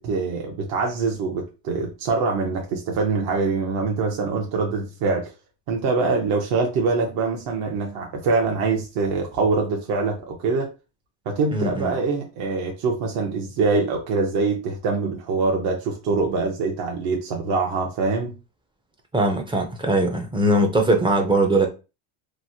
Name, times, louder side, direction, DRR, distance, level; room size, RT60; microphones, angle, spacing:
voice 1, 0.0-5.3 5.7-10.7 11.3-18.3, right 4 dB, 60° right, 0.7 m, -24 dB
voice 2, 11.5-11.9 19.1-21.7, right 1 dB, 10° right, 0.4 m, -20 dB
3.1 x 2.0 x 2.6 m
cardioid pair, 110°, 45 cm